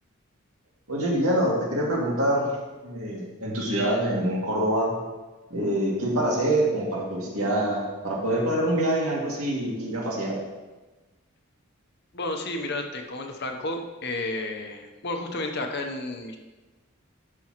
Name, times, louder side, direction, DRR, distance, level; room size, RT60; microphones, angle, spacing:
voice 1, 0.9-2.5 2.8-4.9 5.5-10.4, right 1 dB, 90° right, -3 dB, 2.3 m, -25 dB
voice 2, 12.1-16.4, left 2 dB, 50° left, 4 dB, 0.9 m, -32 dB
13.0 x 5.4 x 3.0 m, 1.2 s
head